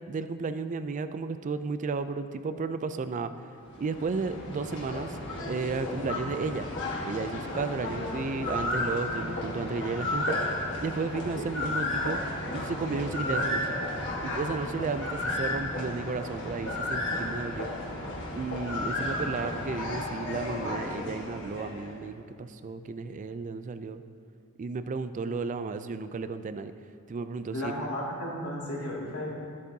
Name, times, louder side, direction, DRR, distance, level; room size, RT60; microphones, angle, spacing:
voice 1, 0.1-3.3 3.8-5.2 5.5-6.7 7.0-12.2 12.5-13.8 14.2-17.7 18.4-24.0 24.6-26.7 27.1-27.9, right 4 dB, 35° right, 11 dB, 0.3 m, -33 dB
sound 1, 3.6-22.0, left 1 dB, 55° left, 1.5 m, -33 dB
voice 2, 27.5-29.3, left 1 dB, 80° left, -5 dB, 2.3 m, -34 dB
14.0 x 8.3 x 2.7 m, 2.3 s
head